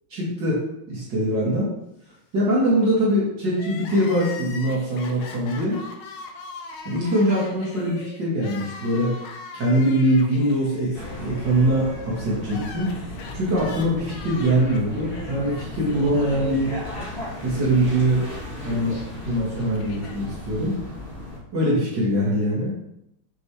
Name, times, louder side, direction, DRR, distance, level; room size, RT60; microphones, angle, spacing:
voice 1, 0.1-1.7 2.3-5.8 6.8-9.2 9.5-13.0 13.3-16.8 17.4-18.2 18.6-20.8 21.5-22.7, right 1 dB, 55° right, -6 dB, 2.6 m, -23 dB
Crying sobbing, 3.5-17.7 18.0-18.1 19.0-20.2, left 4 dB, 80° left, 1.7 m, -41 dB
sound 1, 10.9-21.4, left 1 dB, 30° left, 2.9 m, -35 dB
7.6 x 6.6 x 3.2 m, 0.82 s
omnidirectional pair, 2.3 m